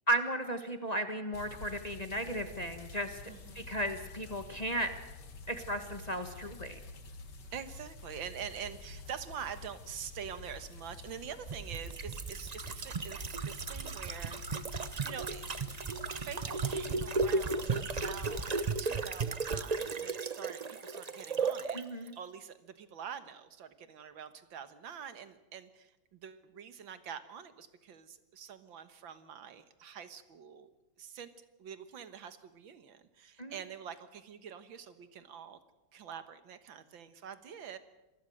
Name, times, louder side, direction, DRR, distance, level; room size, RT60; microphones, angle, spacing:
voice 1, 0.1-3.2 3.5-4.9 5.5-6.8 21.7-22.1 33.4-33.5, right 1 dB, 20° left, 7 dB, 1.4 m, -35 dB
sound 1, 1.3-18.6, left 3 dB, 60° left, 2.4 m, -49 dB
voice 2, 3.3-3.7 7.5-14.4 15.0-15.5 16.2-18.5 18.8-30.7 31.0-31.3 31.6-35.6 35.9-37.8, right 8 dB, 75° right, 12 dB, 2.0 m, -46 dB
sound 2, 11.5-21.8 22.1-22.2, right 4 dB, 55° right, 0.4 m, -35 dB
26.5 x 20.0 x 6.5 m, 1.0 s
omnidirectional pair, 2.1 m